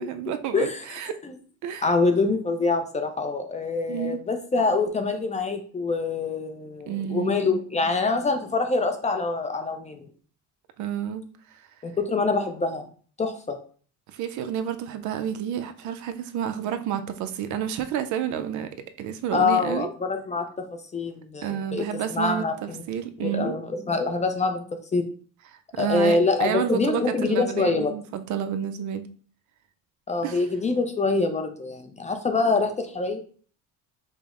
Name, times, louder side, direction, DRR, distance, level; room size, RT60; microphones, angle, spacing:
voice 1, 0.0-1.1 1.6-1.9 3.9-4.2 6.9-7.4 10.8-11.2 11.5-11.6 14.1-18.7 19.0-19.9 21.4-23.5 25.7-29.1 30.2-30.4, right 9 dB, 60° right, 9 dB, 0.5 m, -30 dB
voice 2, 1.8-10.1 11.8-12.9 13.2-13.6 19.3-20.7 20.9-21.8 22.1-22.8 23.2-24.6 24.9-25.1 25.8-27.9 30.1-33.2, left 3 dB, 20° left, 6 dB, 0.4 m, -25 dB
5.1 x 2.0 x 3.6 m, 0.43 s
cardioid pair, 125°, 33 cm